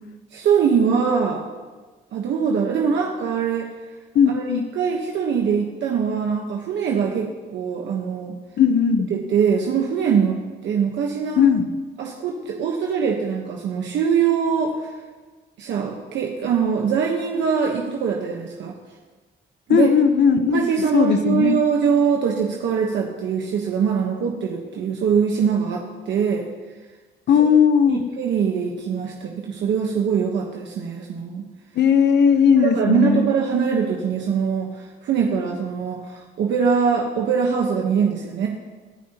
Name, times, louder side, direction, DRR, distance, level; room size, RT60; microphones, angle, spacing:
voice 1, 0.3-1.4 2.1-3.7 4.3-8.3 9.1-11.5 12.0-14.9 15.6-18.7 19.7-19.9 20.5-26.5 27.9-31.5 32.6-38.5, right 6 dB, 90° right, 0 dB, 1.2 m, -22 dB
voice 2, 4.1-4.6 8.6-9.1 11.4-11.7 19.7-20.6 20.9-21.6 27.3-28.0 31.8-33.3, left 7 dB, 70° left, 9 dB, 1.0 m, -17 dB
22.0 x 12.0 x 3.0 m, 1.3 s
cardioid pair, 100°, 18 cm